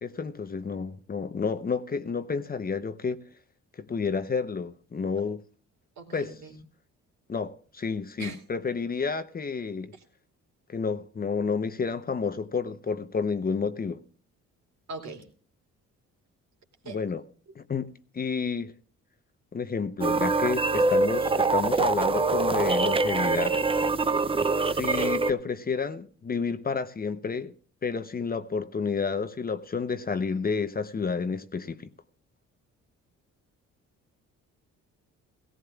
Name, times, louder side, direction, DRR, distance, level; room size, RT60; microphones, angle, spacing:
voice 1, 0.0-3.2 3.8-5.4 6.1-6.4 7.3-9.9 10.7-14.0 16.8-17.2 17.5-18.7 19.5-23.6 24.7-27.5 27.8-31.9, left 5 dB, 30° left, 0.8 m, -30 dB
voice 2, 6.0-6.5 8.2-8.3 14.9-15.2 16.8-17.0, right 3 dB, 65° right, 2.7 m, -39 dB
sound 1, 20.0-25.3, right 3 dB, 20° right, 0.5 m, -24 dB
17.5 x 16.5 x 2.3 m
cardioid pair, 90°, 30 cm